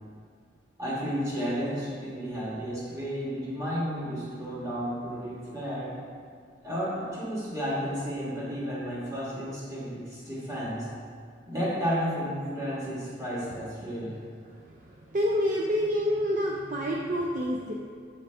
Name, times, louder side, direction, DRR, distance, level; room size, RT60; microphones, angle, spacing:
voice 1, 0.8-5.9 6.6-10.9 11.5-14.2, equal, 20° right, -8 dB, 1.5 m, -32 dB
voice 2, 15.1-17.7, equal, 45° right, -2 dB, 0.4 m, -27 dB
7.0 x 4.8 x 3.4 m, 2.2 s
head